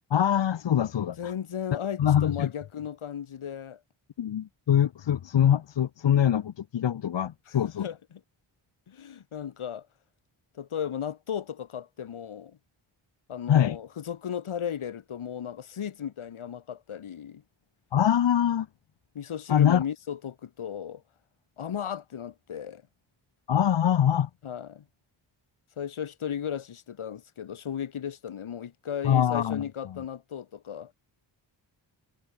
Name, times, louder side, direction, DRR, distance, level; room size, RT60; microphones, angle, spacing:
voice 1, 0.1-1.3 2.0-2.5 4.2-7.8 13.5-13.8 17.9-18.7 19.5-19.8 23.5-24.3 29.0-29.6, left 10 dB, 60° left, 0.9 m, -23 dB
voice 2, 1.0-3.8 7.5-8.2 8.9-9.9 10.5-12.6 13.3-17.4 19.1-21.0 21.6-22.8 24.4-24.9 25.8-30.9, left 8 dB, 80° left, 2.6 m, -35 dB
cardioid pair, 55°, 48 cm